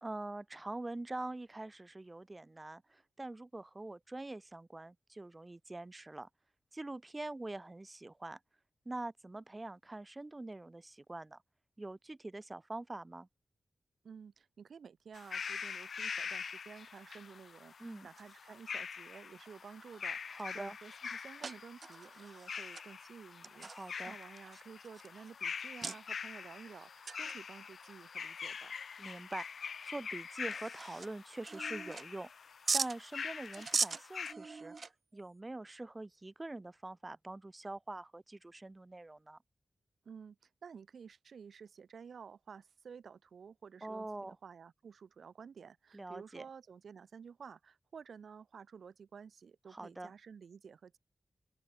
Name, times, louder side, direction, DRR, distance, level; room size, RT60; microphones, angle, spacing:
voice 1, 0.0-6.3 6.7-8.4 8.8-11.4 11.8-13.3 17.8-18.1 20.3-20.8 23.7-24.2 29.0-32.3 32.7-34.7 35.1-39.4 43.8-44.4 45.9-46.4 49.7-50.1, right 2 dB, 25° right, 0.9 m, -44 dB
voice 2, 14.0-28.8 40.0-51.0, right 6 dB, 80° right, 2.4 m, -53 dB
sound 1, 15.1-34.3, left 6 dB, 75° left, 2.7 m, -44 dB
sound 2, 18.2-18.6 19.5-19.6 19.9-20.4 20.9-21.0 21.4-22.9 23.4-25.3 25.8-26.0 27.0-27.4 27.7-27.8 28.4-28.5 29.1-29.2 29.8-29.9 30.3-31.1 31.5-32.3 32.7-33.0 33.5-35.2, right 4 dB, 55° right, 0.8 m, -39 dB
open air
cardioid pair, 70°, 0 cm